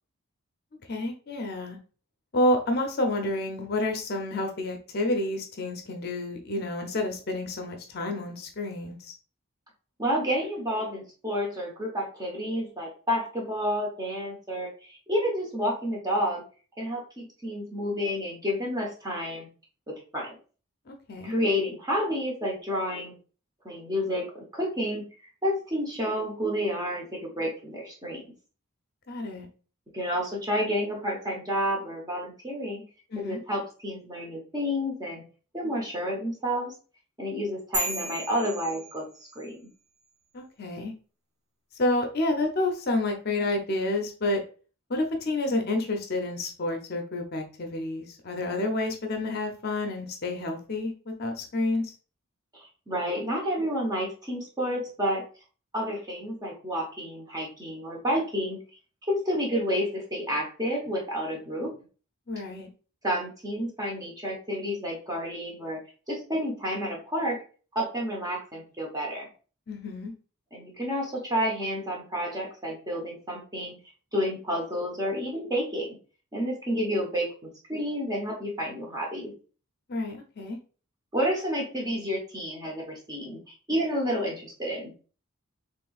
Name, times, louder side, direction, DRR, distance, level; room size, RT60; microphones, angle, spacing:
voice 1, 0.9-1.8 2.3-9.1 20.9-21.3 29.1-29.5 33.1-33.4 40.3-40.9 41.8-44.4 44.9-51.9 62.3-62.7 69.7-70.1 79.9-80.6, left 2 dB, 45° left, 4 dB, 0.6 m, -29 dB
voice 2, 10.0-16.4 16.8-19.5 19.9-20.3 21.2-23.1 23.6-25.1 25.4-28.3 29.9-32.8 33.2-35.2 35.5-36.7 37.2-39.6 52.5-55.2 55.7-58.6 59.1-61.8 63.0-65.8 66.1-67.4 67.7-69.3 70.5-73.8 74.1-75.9 76.3-79.3 81.1-84.9, equal, 15° right, -1 dB, 0.9 m, -30 dB
sound 1, 37.7-39.5, right 1 dB, 50° right, 1.0 m, -33 dB
4.4 x 3.1 x 2.3 m, 0.37 s
head